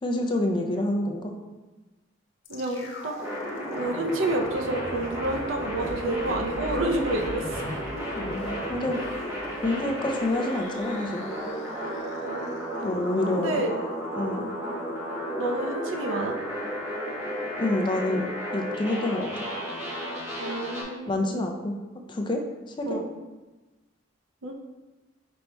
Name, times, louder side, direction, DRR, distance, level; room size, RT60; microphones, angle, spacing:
voice 1, 0.0-1.3 8.2-9.0 9.6-11.3 12.8-13.6 14.1-14.5 17.6-19.5 21.1-21.8 22.1-22.4 22.8-23.0, left 1 dB, 25° left, 2 dB, 0.4 m, -28 dB
sound 1, 2.4-12.6 12.8-12.9, left 1 dB, 80° left, 0.7 m, -41 dB
voice 2, 2.5-3.1 3.7-7.6 12.1-12.7 13.3-13.7 15.4-16.3 20.4-21.5 22.9-23.1 24.4-24.5, right 1 dB, 85° right, 2 dB, 0.6 m, -29 dB
sound 2, 3.2-20.8, equal, 10° right, 0.9 m, -33 dB
5.3 x 4.1 x 2.2 m, 1.2 s
head